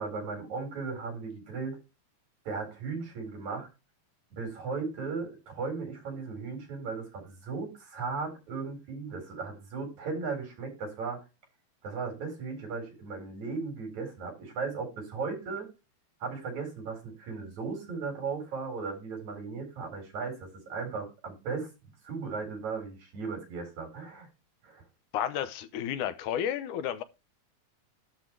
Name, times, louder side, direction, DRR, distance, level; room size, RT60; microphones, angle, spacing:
voice 1, 0.0-1.8 2.5-3.7 4.3-11.2 11.8-15.7 16.2-21.7 22.0-24.3 24.6-24.8, right 4 dB, 65° right, 5.5 m, -36 dB
voice 2, 25.1-27.0, left 10 dB, 85° left, 2.3 m, -32 dB
11.5 x 4.4 x 4.6 m
omnidirectional pair, 3.5 m